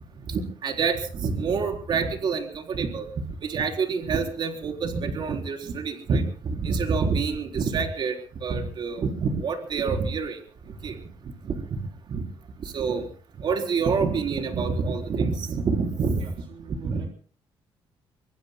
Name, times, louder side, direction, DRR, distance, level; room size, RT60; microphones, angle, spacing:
voice 1, 0.3-3.1 3.4-10.4 10.7-11.0 11.4-11.6 12.1-12.2 12.6-13.0 13.4-16.2 16.8-17.0, right 5 dB, 55° right, 3 dB, 4.0 m, -27 dB
voice 2, 16.2-17.1, right 7 dB, 70° right, 1 dB, 3.3 m, -44 dB
24.0 x 24.0 x 2.2 m, 0.43 s
cardioid pair, 125°, 9 cm